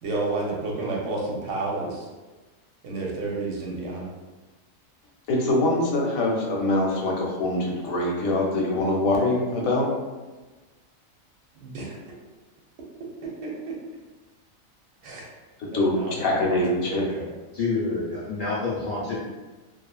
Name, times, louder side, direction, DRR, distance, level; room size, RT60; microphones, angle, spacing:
voice 1, 0.0-2.1 2.8-4.1 11.6-12.0 13.4-13.7 15.0-15.2 15.7-17.3, right 3 dB, 70° right, -3 dB, 0.9 m, -31 dB
voice 2, 5.3-9.9 15.6-17.0, left 2 dB, 80° left, -1 dB, 1.0 m, -24 dB
voice 3, 17.5-19.2, left 3 dB, 50° left, -7 dB, 0.6 m, -27 dB
2.6 x 2.4 x 2.3 m, 1.2 s
omnidirectional pair, 1.4 m